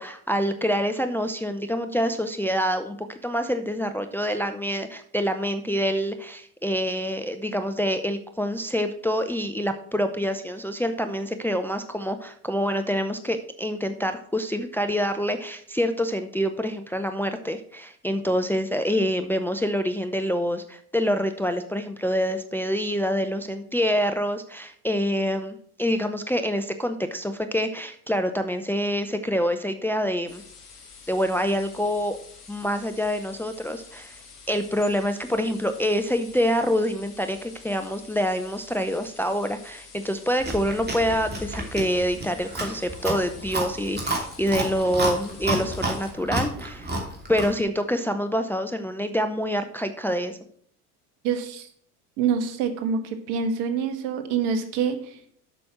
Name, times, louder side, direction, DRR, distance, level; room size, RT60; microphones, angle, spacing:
voice 1, 0.0-3.0 3.2-30.4 31.1-32.2 32.5-34.2 34.5-46.9 47.3-50.4, equal, 5° left, 8 dB, 0.6 m, -26 dB
sound 1, 30.3-46.1, left 5 dB, 75° left, 2.1 m, -48 dB
Chewing mastication, 40.4-47.6, right 1 dB, 20° right, 2.8 m, -30 dB
voice 2, 51.2-51.7 52.2-55.2, right 6 dB, 60° right, 7 dB, 1.6 m, -26 dB
7.8 x 6.1 x 6.0 m, 0.62 s
hypercardioid pair, 70°, 46 cm